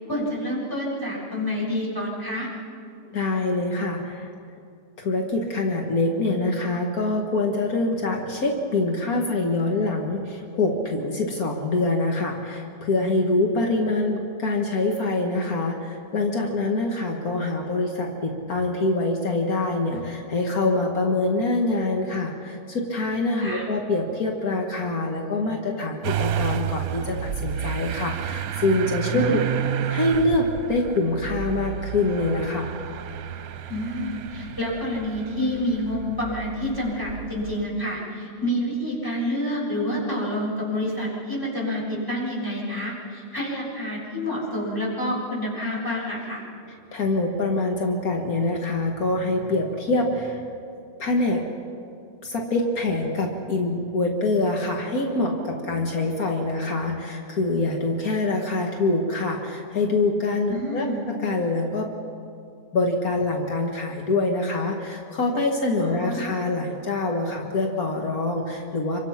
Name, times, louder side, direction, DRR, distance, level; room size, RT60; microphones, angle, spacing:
voice 1, 0.1-2.5 23.4-23.6 29.1-29.4 33.7-46.4 60.5-61.0 65.8-66.3, left 1 dB, 15° left, -6 dB, 7.3 m, -28 dB
voice 2, 3.1-4.3 5.0-29.4 29.9-32.7 46.9-50.4 51.0-51.5 52.2-61.9 62.7-69.0, left 2 dB, 80° left, 1 dB, 2.3 m, -25 dB
Motor vehicle (road) / Engine starting, 26.0-37.7, right 10 dB, 80° right, 1.2 m, -31 dB
27.5 x 24.0 x 5.9 m, 2.5 s
omnidirectional pair, 1.5 m